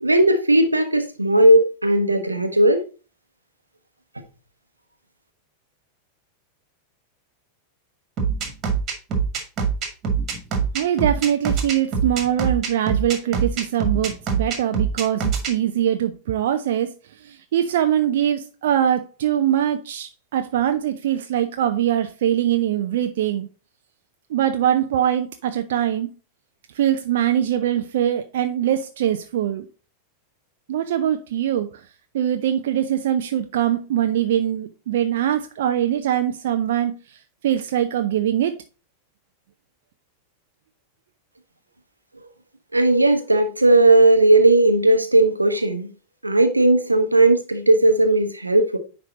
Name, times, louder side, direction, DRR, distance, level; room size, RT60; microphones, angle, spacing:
voice 1, 0.0-2.8 42.7-45.9 46.2-48.8, right 2 dB, 85° right, 1.0 m, -16 dB
sound 1, 8.2-15.5, right 6 dB, 30° right, 2.0 m, -23 dB
voice 2, 10.7-16.9 17.2-23.5 24.3-26.1 26.7-29.7 30.7-31.8 32.1-36.9 37.4-38.5, right 10 dB, 55° right, 0.5 m, -22 dB
9.6 x 3.4 x 3.9 m
figure-of-eight pair, 90°, 0 cm